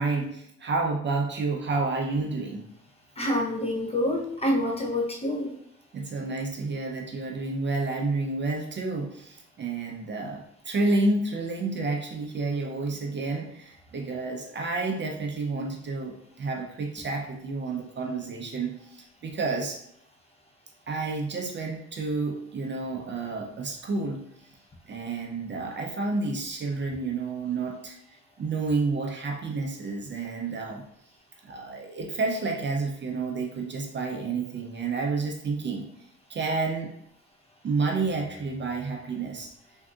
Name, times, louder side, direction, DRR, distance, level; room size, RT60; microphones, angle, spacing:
voice 1, 0.0-2.6 5.9-19.8 20.9-24.2 24.9-28.0 28.4-30.8 31.4-35.8 36.3-36.9 37.6-39.5, right 3 dB, 40° right, 1 dB, 0.6 m, -30 dB
voice 2, 3.2-5.6, left 1 dB, 20° left, -1 dB, 0.7 m, -27 dB
3.5 x 2.7 x 2.4 m, 0.72 s
cardioid pair, 90°, 30 cm